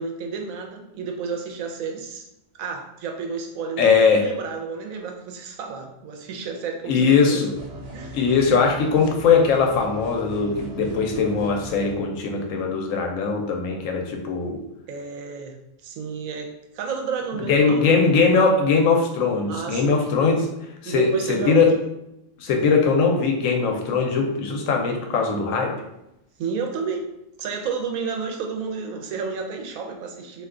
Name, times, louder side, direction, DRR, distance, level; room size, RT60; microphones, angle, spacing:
voice 1, 0.0-2.3 2.6-7.4 7.9-8.2 8.5-8.6 14.9-15.6 15.8-17.9 19.5-20.2 20.8-21.7 22.6-22.8 26.4-27.1 27.4-30.5, right 5 dB, 85° right, 3 dB, 1.0 m, -31 dB
voice 2, 3.8-4.3 6.9-7.6 8.1-14.6 17.5-20.5 20.8-21.8 22.4-25.8, left 5 dB, 80° left, 2 dB, 1.0 m, -20 dB
sound 1, 7.5-11.9, right 1 dB, 60° right, 0.8 m, -39 dB
2.6 x 2.2 x 3.6 m, 0.84 s
omnidirectional pair, 1.4 m